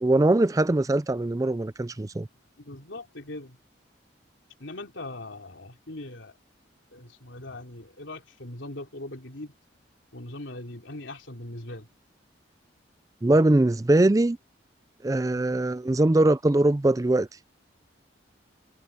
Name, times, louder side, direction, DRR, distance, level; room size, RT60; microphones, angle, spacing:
voice 1, 0.0-2.3 13.2-14.4 15.0-17.3, right 2 dB, 15° right, 0.4 m, -21 dB
voice 2, 2.6-3.6 4.6-6.4 6.9-9.5 10.1-11.9, left 2 dB, 75° left, 3.3 m, -40 dB
head